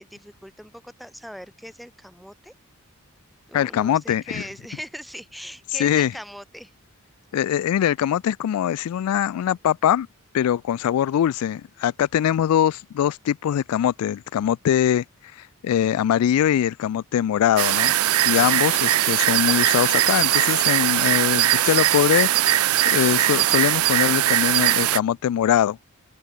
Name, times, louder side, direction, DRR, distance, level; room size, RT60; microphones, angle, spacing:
voice 1, 0.0-2.5 3.5-6.7, equal, ahead, 2.9 m, -40 dB
voice 2, 3.5-4.4 5.8-6.1 7.3-10.1 10.3-15.0 15.3-17.9 18.3-25.8, left 10 dB, 90° left, 0.3 m, -22 dB
sound 1, 17.6-25.0, right 13 dB, 75° right, 0.5 m, -20 dB
open air
head